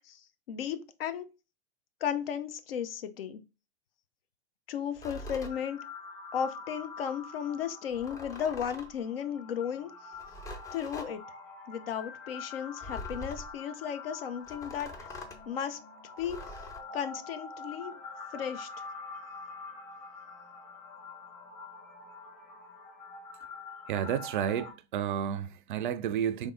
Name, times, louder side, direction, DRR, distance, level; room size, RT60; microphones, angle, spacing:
voice 1, 0.5-1.3 2.0-3.4 4.7-5.8 6.3-9.9 10.7-11.2 11.7-15.1 15.5-15.8 16.2-16.4 16.9-18.0 18.3-18.7, left 8 dB, 60° left, 0.6 m, -35 dB
sound 1, 4.9-5.6 7.9-9.0 10.1-11.1 12.8-13.6 14.5-15.4 16.2-16.8, left 1 dB, 10° left, 0.5 m, -43 dB
sound 2, 5.5-24.7, left 4 dB, 35° left, 1.4 m, -46 dB
voice 2, 23.9-26.5, right 9 dB, 50° right, 0.4 m, -31 dB
3.6 x 3.1 x 3.7 m
figure-of-eight pair, 100°, 33 cm